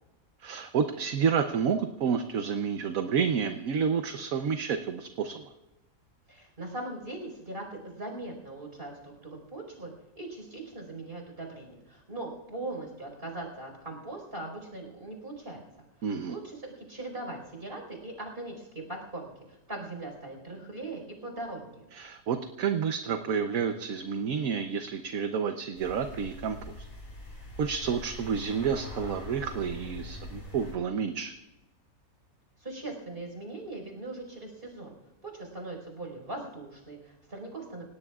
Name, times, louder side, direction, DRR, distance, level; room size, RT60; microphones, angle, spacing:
voice 1, 0.4-5.5 16.0-16.4 21.9-26.9 27.6-31.3, right 6 dB, 70° right, 6 dB, 1.3 m, -30 dB
voice 2, 6.3-15.6 16.0-21.8 32.6-34.9 35.2-37.8, right 2 dB, 40° right, 1 dB, 5.1 m, -40 dB
sound 1, 25.8-30.7, left 1 dB, 60° left, 6.4 m, -43 dB
28.5 x 18.0 x 2.4 m, 1.0 s
omnidirectional pair, 1.5 m